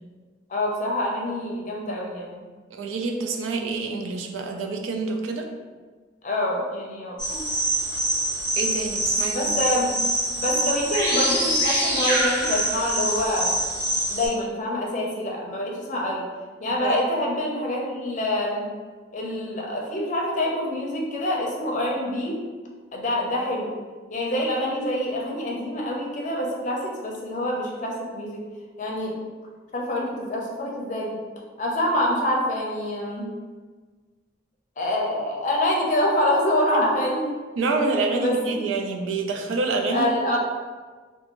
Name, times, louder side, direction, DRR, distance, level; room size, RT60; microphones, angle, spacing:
voice 1, 0.5-2.4 6.2-7.4 9.3-9.9 10.4-13.5 14.1-16.2 16.6-18.7 19.1-22.4 22.9-23.8 24.1-28.4 28.8-29.1 29.7-31.2 31.6-33.3 34.8-37.4 38.2-38.6 39.9-40.4, left 1 dB, 40° left, -2 dB, 0.5 m, -26 dB
voice 2, 2.7-5.5 8.6-9.7 16.7-17.0 36.7-36.9 37.6-40.4, right 3 dB, 90° right, 3 dB, 0.4 m, -27 dB
sound 1, 7.2-14.3, right 1 dB, 15° right, 1.0 m, -25 dB
2.5 x 2.3 x 2.9 m, 1.4 s
head